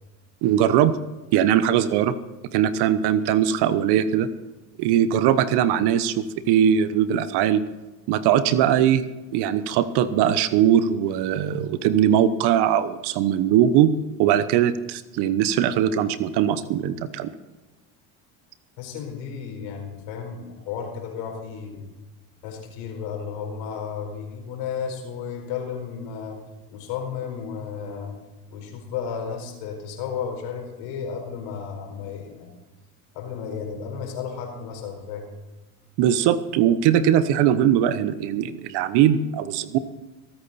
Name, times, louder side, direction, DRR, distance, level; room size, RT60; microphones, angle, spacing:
voice 1, 0.4-1.0 1.3-2.1 2.5-4.3 4.8-7.6 8.1-13.9 14.2-17.3 36.0-39.8, right 10 dB, 65° right, 13 dB, 1.1 m, -20 dB
voice 2, 18.8-21.9 22.4-26.4 26.7-28.2 28.5-32.6 33.1-35.3, left 6 dB, 75° left, 3 dB, 4.6 m, -33 dB
23.0 x 9.1 x 4.2 m, 1.1 s
supercardioid pair, 85°, 42 cm